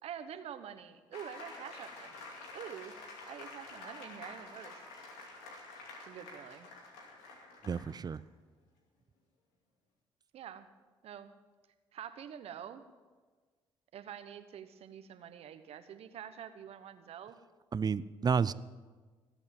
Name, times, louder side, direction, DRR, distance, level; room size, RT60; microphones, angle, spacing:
voice 1, 0.0-5.1 6.0-6.7 10.3-10.7 11.0-11.3 11.9-12.8 13.9-17.4, right 9 dB, 70° right, 10 dB, 1.1 m, -47 dB
sound 1, 1.1-8.2, left 3 dB, 90° left, 2.5 m, -49 dB
voice 2, 7.6-8.2 17.7-18.5, right 6 dB, 40° right, 17 dB, 0.6 m, -31 dB
19.5 x 8.3 x 7.2 m, 1.4 s
supercardioid pair, 55°, 11 cm